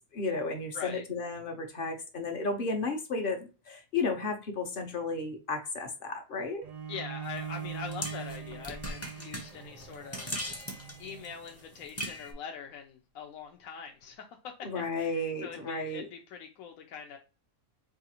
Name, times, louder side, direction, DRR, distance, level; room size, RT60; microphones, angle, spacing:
voice 1, 0.1-6.6 14.6-16.1, left 3 dB, 50° left, 0.8 m, -33 dB
Bowed string instrument, 6.6-11.8, right 8 dB, 55° right, 0.4 m, -42 dB
voice 2, 6.9-10.3 11.0-14.7 15.0-17.2, left 6 dB, 75° left, 1.0 m, -43 dB
sound 1, 7.2-12.3, equal, 20° left, 0.4 m, -40 dB
4.6 x 2.5 x 2.8 m
omnidirectional pair, 1.4 m